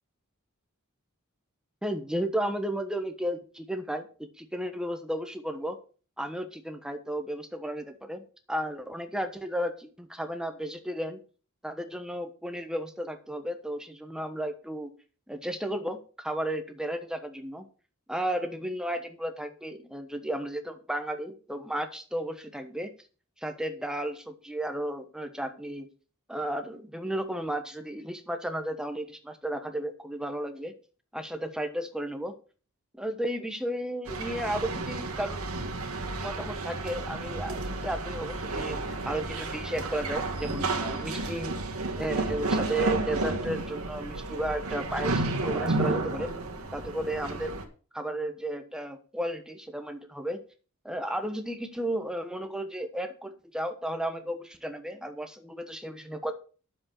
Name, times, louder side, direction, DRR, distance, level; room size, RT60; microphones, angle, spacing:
voice 1, 1.8-5.8 6.2-11.2 11.6-14.9 15.3-17.7 18.1-22.9 23.4-25.9 26.3-30.7 31.1-32.3 32.9-35.4 36.2-41.6 41.9-46.3 46.7-47.6 47.9-50.4 50.8-56.3, right 1 dB, 5° right, 7 dB, 1.2 m, -33 dB
sound 1, 34.1-47.6, right 2 dB, 85° right, 1.8 m, -32 dB
9.8 x 7.4 x 5.6 m, 0.39 s
head